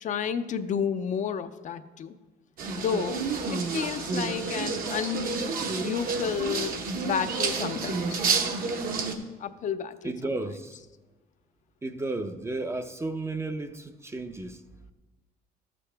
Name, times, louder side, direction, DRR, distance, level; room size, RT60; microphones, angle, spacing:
voice 1, 0.0-2.2 2.8-3.2 3.5-8.2 9.4-10.1, left 7 dB, 45° left, 0.5 m, -31 dB
sound 1, 2.6-9.1, right 4 dB, 60° right, 1.1 m, -30 dB
voice 2, 10.0-10.8 11.8-14.6, right 2 dB, 15° right, 0.5 m, -33 dB
13.0 x 7.6 x 3.4 m
cardioid pair, 110°, 17 cm